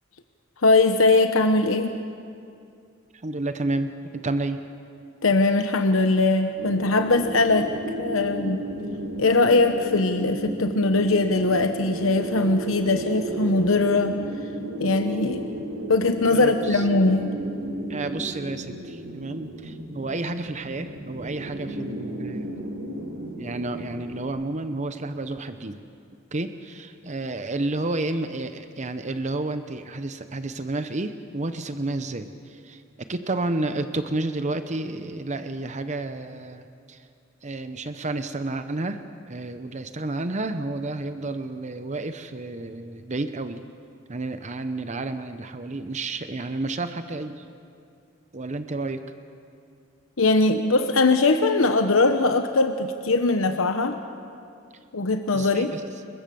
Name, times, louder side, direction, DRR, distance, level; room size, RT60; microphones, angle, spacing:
voice 1, 0.6-1.9 5.2-7.7 8.0-8.6 9.2-14.2 14.8-15.4 15.9-17.3 50.2-54.0 54.9-55.7, left 3 dB, 85° left, 7 dB, 1.0 m, -21 dB
voice 2, 3.2-4.6 16.3-16.9 17.9-22.6 23.4-25.8 26.3-32.8 33.1-37.1 37.4-39.0 39.3-43.6 44.1-47.4 48.3-49.0 55.3-55.8, right 2 dB, 35° right, 9 dB, 0.9 m, -31 dB
sound 1, 6.6-24.2, right 1 dB, 85° right, 3.7 m, -34 dB
28.5 x 22.0 x 7.0 m, 2.4 s
head